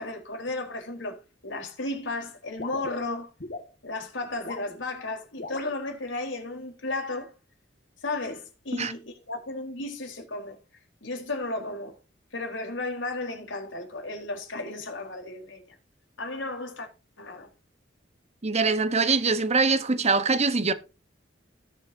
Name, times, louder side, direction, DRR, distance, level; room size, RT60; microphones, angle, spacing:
voice 1, 0.0-3.3 3.8-7.3 8.0-10.6 11.0-12.0 12.3-15.7 16.2-16.9 17.2-17.5, left 2 dB, 85° left, 4.2 m, -34 dB
sound 1, 2.6-3.7 4.3-4.7 5.4-5.7, left 3 dB, 55° left, 2.0 m, -38 dB
voice 2, 18.4-20.7, right 4 dB, 35° right, 1.1 m, -23 dB
19.0 x 7.1 x 2.8 m
head